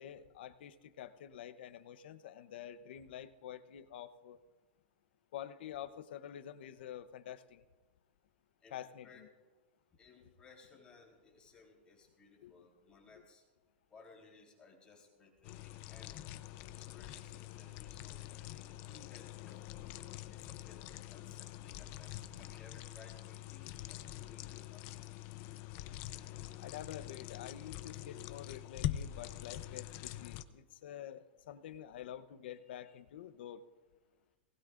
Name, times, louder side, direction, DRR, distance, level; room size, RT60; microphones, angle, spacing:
voice 1, 0.0-4.4 5.3-7.6 8.7-9.3 12.4-12.5 26.6-33.6, left 10 dB, 70° left, 12 dB, 0.9 m, -48 dB
voice 2, 9.9-13.4 13.9-16.2 16.7-19.6 19.9-20.8 21.1-24.9 32.5-32.6 32.9-33.0, left 4 dB, 15° left, 0 dB, 3.8 m, -61 dB
sound 1, 15.4-30.4, left 13 dB, 40° left, 0.6 m, -45 dB
20.5 x 19.0 x 2.6 m, 1.2 s
supercardioid pair, 150°, 6 cm